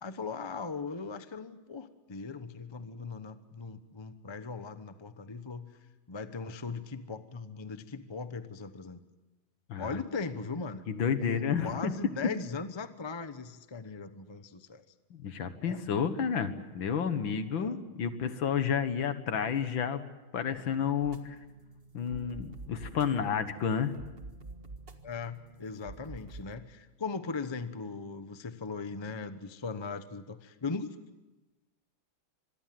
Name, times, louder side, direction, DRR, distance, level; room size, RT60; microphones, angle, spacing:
voice 1, 0.0-5.7 6.1-9.0 9.8-10.9 11.1-14.8 15.6-15.8 17.6-17.8 25.0-30.9, left 4 dB, 25° left, 11 dB, 0.6 m, -39 dB
voice 2, 10.9-11.9 15.1-20.0 20.3-21.4 21.9-23.9, left 7 dB, 70° left, 10 dB, 2.1 m, -31 dB
sound 1, 21.0-26.6, right 3 dB, 30° right, 1.6 m, -48 dB
25.5 x 22.5 x 7.7 m, 1.1 s
omnidirectional pair, 2.3 m